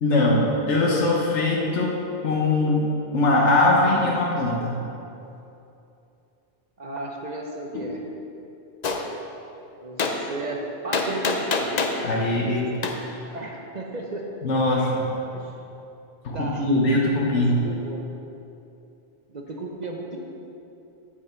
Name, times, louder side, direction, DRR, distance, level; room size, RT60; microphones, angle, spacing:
voice 1, 0.0-1.9 2.2-2.8 3.1-4.8 7.7-7.9 12.0-12.8 14.4-15.1 16.2-17.6, left 2 dB, 85° left, -2 dB, 1.3 m, -21 dB
voice 2, 6.8-8.0 9.8-11.7 13.3-14.3 15.3-15.6 16.3-16.6 17.5-18.0 19.3-20.2, right 2 dB, 40° right, 0 dB, 0.9 m, -34 dB
Gunshot gunfire, 8.8-9.0 10.0-10.2 10.9-12.0 12.8-13.0, left 4 dB, 45° left, 0.6 m, -24 dB
8.2 x 6.2 x 4.4 m, 2.8 s
omnidirectional pair, 1.2 m